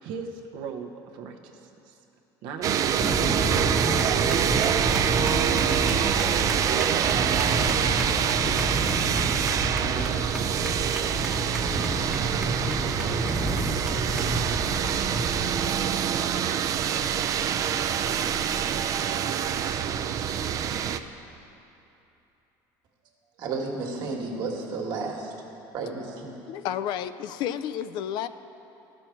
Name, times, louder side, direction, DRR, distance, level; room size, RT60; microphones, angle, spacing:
voice 1, 0.0-2.0 2.4-3.2 4.2-6.9 7.3-7.8 8.3-9.1 9.4-10.7, right 6 dB, 75° right, 3 dB, 0.8 m, -39 dB
sound 1, 2.6-21.0, right 8 dB, 40° right, 0.4 m, -26 dB
sound 2, 3.0-15.7, right 1 dB, 10° right, 0.8 m, -30 dB
voice 2, 23.4-25.3 25.7-26.3, right 3 dB, 60° right, 0 dB, 1.5 m, -32 dB
voice 3, 26.5-28.3, left 10 dB, 65° left, 13 dB, 0.4 m, -31 dB
13.0 x 6.2 x 4.5 m, 2.9 s
cardioid pair, 120°, 8 cm